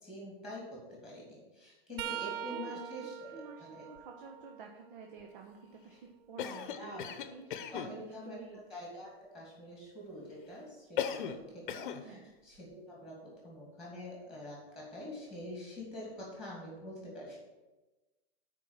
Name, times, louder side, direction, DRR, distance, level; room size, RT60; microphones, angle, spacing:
voice 1, 0.0-3.8 6.7-7.0 7.7-8.4 8.7-17.5, left 1 dB, ahead, -3 dB, 2.5 m, -46 dB
sound 1, 2.0-5.7 6.3-8.2 11.1-11.3 12.5-12.7 14.0-14.1, right 11 dB, 75° right, 0.5 m, -45 dB
voice 2, 2.5-2.9 3.3-6.0 6.3-8.6 12.0-12.3, right 5 dB, 55° right, 2 dB, 1.1 m, -50 dB
Cough, 6.4-7.9 11.0-11.4 11.7-12.0, left 9 dB, 55° left, 0.8 m, -37 dB
9.2 x 4.7 x 7.4 m, 1.1 s
supercardioid pair, 170°, 30 cm